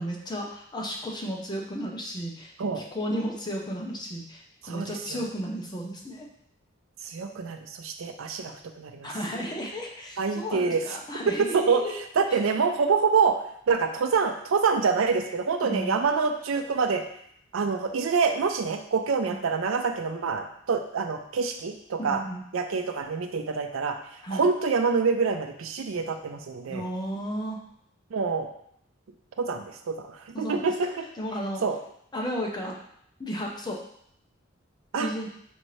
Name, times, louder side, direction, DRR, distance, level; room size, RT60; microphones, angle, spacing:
voice 1, 0.0-6.3 9.0-11.9 12.3-12.4 15.6-16.0 19.2-19.4 22.0-22.4 24.2-24.5 26.7-27.6 30.3-30.9 31.2-31.6 32.1-32.8 33.2-33.8 35.0-35.3, equal, 20° left, -1 dB, 0.7 m, -33 dB
voice 2, 4.6-5.2 7.0-9.1 10.2-10.8 11.3-11.8 12.2-13.4 13.7-17.0 17.5-22.2 22.5-24.0 24.3-26.8 28.1-28.5 29.4-31.1 31.6-31.8 34.9-35.1, right 5 dB, 85° right, 6 dB, 0.5 m, -26 dB
5.3 x 2.8 x 3.1 m, 0.69 s
head